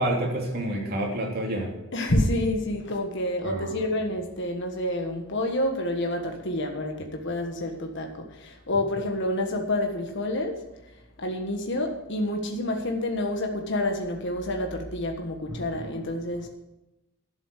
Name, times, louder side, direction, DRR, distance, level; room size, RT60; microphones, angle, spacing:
voice 1, 0.0-1.7 3.4-3.8, right 1 dB, 50° right, 0 dB, 3.1 m, -28 dB
voice 2, 1.9-16.5, left 1 dB, 60° left, 3 dB, 1.5 m, -28 dB
12.0 x 7.3 x 8.3 m, 0.97 s
head